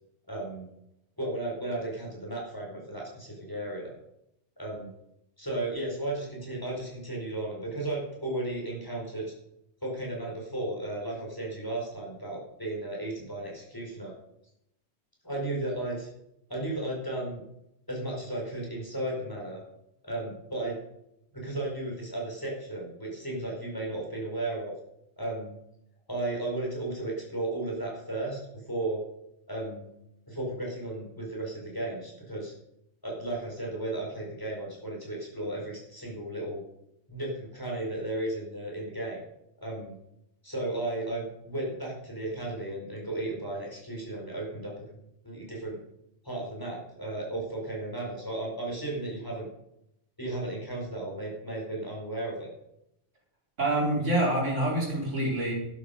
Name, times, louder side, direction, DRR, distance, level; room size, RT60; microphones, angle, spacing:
voice 1, 0.3-0.7 1.2-3.9 4.6-4.9 5.4-9.3 9.8-14.1 15.2-16.1 16.5-17.4 17.9-19.6 20.0-20.8 21.3-24.7 25.2-25.6 26.1-29.0 29.5-29.9 30.3-32.5 33.0-36.6 37.1-39.2 39.6-40.0 40.4-44.9 45.2-45.8 46.2-49.5 50.2-52.5, right 2 dB, 15° left, -2 dB, 5.3 m, -34 dB
voice 2, 53.6-55.5, right 1 dB, 75° right, -5 dB, 4.7 m, -26 dB
12.0 x 11.5 x 5.3 m, 0.81 s
omnidirectional pair, 1.3 m